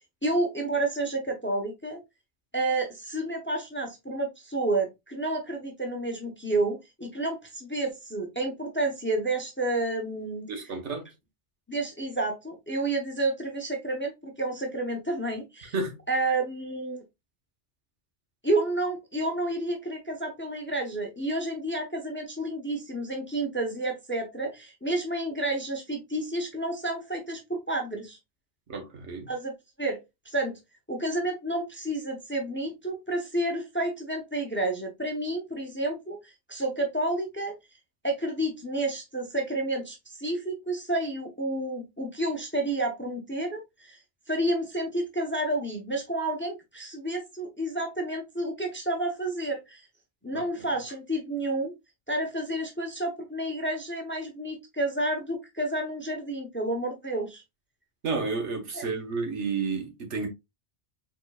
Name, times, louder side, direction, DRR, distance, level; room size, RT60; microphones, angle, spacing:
voice 1, 0.2-2.0 2.5-10.5 11.7-15.7 16.1-17.0 18.4-28.2 29.3-29.5 29.8-30.0 30.3-30.6 30.9-37.5 38.0-44.0 44.3-49.8 50.2-51.7 52.1-57.4 58.7-58.8, right 2 dB, 10° left, 0.8 m, -30 dB
voice 2, 10.5-11.1 15.7-16.0 28.7-29.3 50.3-50.4 58.0-60.3, right 4 dB, 75° right, 1.5 m, -31 dB
4.3 x 3.9 x 2.3 m
omnidirectional pair, 1.2 m